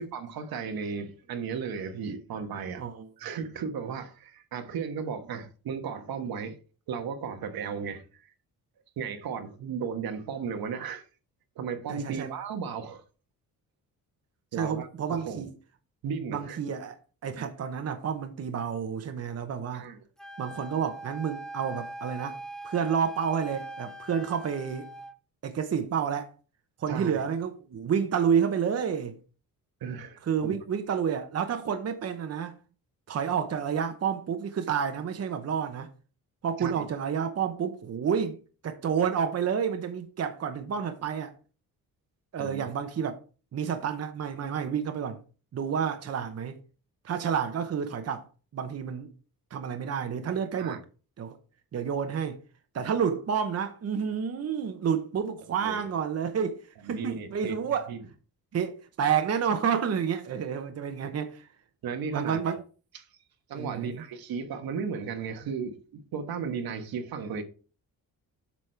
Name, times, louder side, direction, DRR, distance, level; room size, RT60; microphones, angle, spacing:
voice 1, 0.0-2.8 3.2-6.6 6.9-8.3 9.0-11.0 11.6-13.0 14.5-15.4 16.0-16.6 19.7-20.0 26.9-27.2 29.8-30.5 36.6-36.9 42.4-42.6 50.6-50.8 55.6-55.8 56.9-57.6 57.9-58.0 61.8-62.5 62.9-63.0 63.5-67.4, right 6 dB, 80° right, 1.3 m, -35 dB
voice 2, 2.8-3.1 11.9-12.3 14.6-15.5 16.3-16.9 17.2-19.9 20.4-22.4 22.6-24.9 25.4-26.3 26.8-29.2 30.2-32.6 33.1-35.9 36.4-38.4 38.6-41.3 42.3-43.2 43.5-45.2 45.5-46.6 47.0-48.3 48.5-49.1 49.5-50.8 51.2-51.4 51.7-52.4 52.7-57.9 58.5-61.5 62.1-62.6 63.5-64.0, right 7 dB, 45° right, 0.9 m, -29 dB
Wind instrument woodwind instrument, 20.2-25.2, right 2 dB, ahead, 0.5 m, -41 dB
8.4 x 6.2 x 3.4 m
cardioid pair, 145°, 36 cm